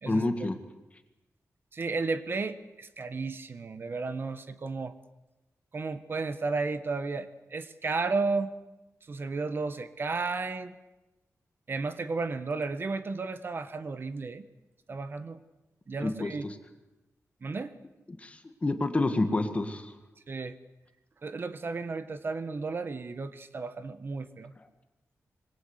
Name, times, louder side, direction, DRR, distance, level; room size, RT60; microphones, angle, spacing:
voice 1, 0.1-0.6 16.0-16.6 18.2-19.9, left 2 dB, 25° left, 7 dB, 1.9 m, -29 dB
voice 2, 1.7-4.9 5.7-8.5 9.1-10.7 11.7-14.5 14.9-15.4 15.9-16.5 17.4-17.7 20.3-20.5 21.2-24.5, right 3 dB, 40° right, 12 dB, 1.2 m, -33 dB
26.0 x 22.0 x 8.2 m, 1.0 s
wide cardioid pair, 170°, 6 cm